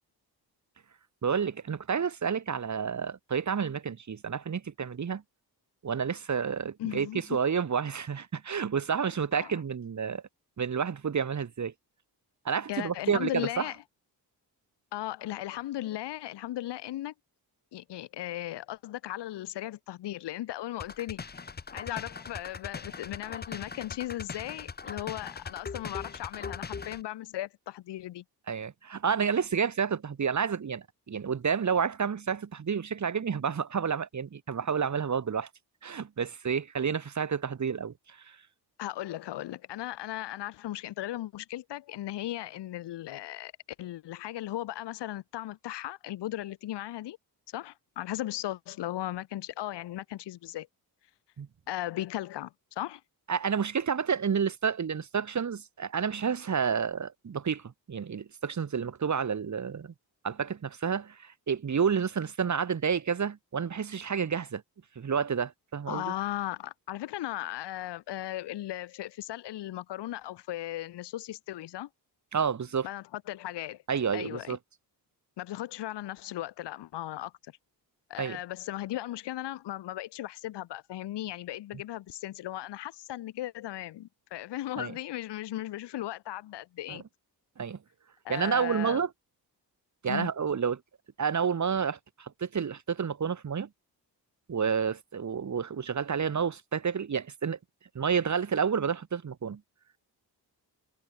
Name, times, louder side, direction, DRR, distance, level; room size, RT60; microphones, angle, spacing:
voice 1, 1.2-5.2 5.8-10.2 10.6-11.7 12.5-13.7 28.5-35.5 35.8-37.9 51.4-51.5 53.3-57.6 57.9-59.9 60.2-64.6 65.0-66.1 72.3-72.9 73.9-74.6 78.2-78.4 84.8-84.9 86.9-87.0 87.6-87.8 88.3-89.1 90.0-90.8 91.2-93.7 94.5-97.6 98.0-99.6, right 6 dB, 45° right, 2.1 m, -30 dB
voice 2, 6.8-7.4 9.3-9.6 12.7-13.8 14.9-17.1 17.7-21.2 21.7-28.2 38.8-43.5 43.8-47.2 47.5-50.7 51.7-53.0 65.9-71.9 72.8-73.8 74.1-74.6 75.4-77.3 78.1-87.0 88.2-89.0 90.1-90.3, left 14 dB, 80° left, 0.8 m, -37 dB
sound 1, 20.8-27.0, left 5 dB, 25° left, 0.8 m, -40 dB
cardioid pair, 115°, 41 cm